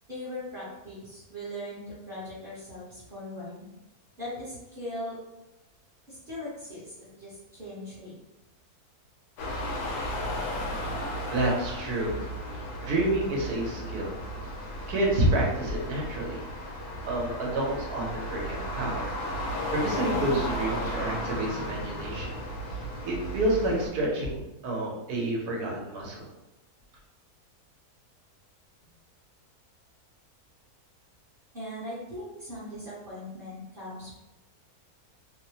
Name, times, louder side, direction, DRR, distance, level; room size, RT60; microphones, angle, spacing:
voice 1, 0.1-3.6 4.2-5.2 6.1-8.1 31.5-34.2, left 1 dB, 40° right, -11 dB, 0.9 m, -39 dB
sound 1, 9.4-23.9, equal, 90° left, 1.2 m, -34 dB
voice 2, 11.3-12.2 12.5-14.1 14.9-16.4 17.1-19.0 19.5-22.3 23.1-26.3, right 1 dB, 80° right, -2 dB, 1.3 m, -29 dB
3.0 x 2.1 x 2.7 m, 0.99 s
omnidirectional pair, 1.6 m